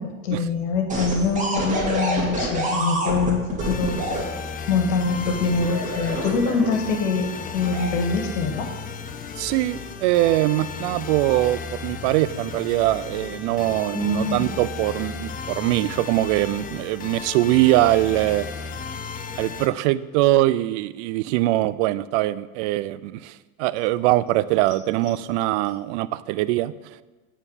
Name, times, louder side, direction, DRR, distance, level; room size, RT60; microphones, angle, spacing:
voice 1, 0.0-4.0 4.7-8.7 13.9-14.5, left 4 dB, 75° left, 4 dB, 1.9 m, -24 dB
sound 1, 0.9-4.2 5.2-6.9 7.5-7.9, right 2 dB, 20° right, 2.4 m, -27 dB
sound 2, 3.6-19.7, left 5 dB, 20° left, 0.6 m, -35 dB
voice 2, 9.4-18.5 19.4-23.3 23.6-26.7, right 16 dB, 65° right, 17 dB, 0.5 m, -22 dB
8.9 x 4.4 x 7.3 m, 1.2 s
hypercardioid pair, 105°, 39 cm